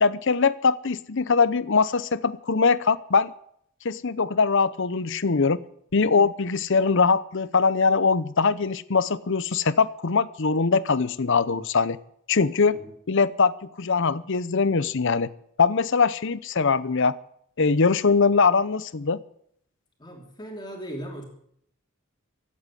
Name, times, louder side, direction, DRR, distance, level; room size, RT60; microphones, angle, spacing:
voice 1, 0.0-3.3 3.8-5.6 5.9-12.0 12.3-12.8 13.1-15.3 15.6-17.2 17.6-19.2, left 4 dB, 60° left, 17 dB, 0.7 m, -22 dB
voice 2, 20.0-21.2, right 1 dB, 20° left, 1 dB, 3.1 m, -38 dB
16.0 x 8.7 x 10.0 m, 0.69 s
head